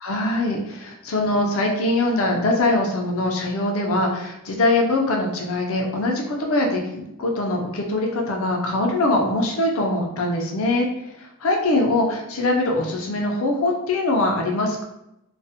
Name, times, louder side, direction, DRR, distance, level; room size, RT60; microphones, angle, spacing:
voice 1, 0.0-10.9 11.2-14.8, left 2 dB, 70° left, 1 dB, 0.4 m, -22 dB
2.4 x 2.0 x 2.7 m, 0.87 s
head